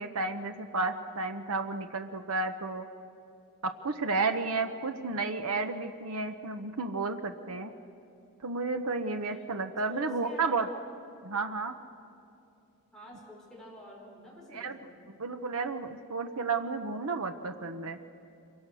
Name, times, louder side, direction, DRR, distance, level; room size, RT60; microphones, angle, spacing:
voice 1, 0.0-2.8 3.6-7.7 8.4-10.7 11.2-11.8 14.5-14.8 15.2-18.0, right 3 dB, 90° right, 7 dB, 1.0 m, -32 dB
voice 2, 9.0-9.4 9.9-10.7 12.9-15.0, equal, 5° left, -5 dB, 5.6 m, -48 dB
26.5 x 24.0 x 6.3 m, 2.7 s
head